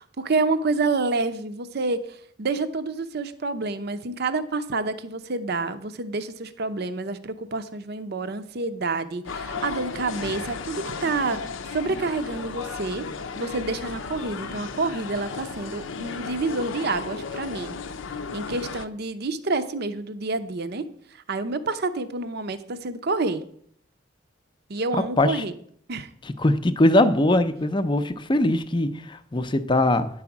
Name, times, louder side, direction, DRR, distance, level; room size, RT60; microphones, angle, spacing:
voice 1, 0.0-13.0 13.4-17.7 18.3-20.9 21.1-23.4 24.7-25.5 25.9-26.1, right 3 dB, 55° right, 0.7 m, -28 dB
sound 1, 9.2-18.9, left 4 dB, 80° left, 0.6 m, -34 dB
voice 2, 26.4-30.1, left 1 dB, 25° left, 0.5 m, -21 dB
9.7 x 4.8 x 7.1 m
head